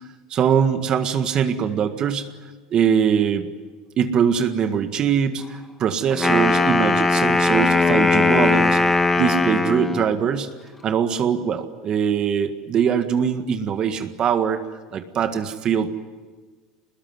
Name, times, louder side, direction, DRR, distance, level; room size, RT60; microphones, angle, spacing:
voice 1, 0.3-2.3 2.7-3.5 4.0-10.5 10.8-14.6 14.9-15.9, right 7 dB, 40° right, 8 dB, 1.8 m, -22 dB
Wind instrument woodwind instrument, 6.1-10.1, left 3 dB, 10° left, 1.9 m, -19 dB
25.0 x 20.5 x 9.7 m, 1.4 s
supercardioid pair, 115°, 2 cm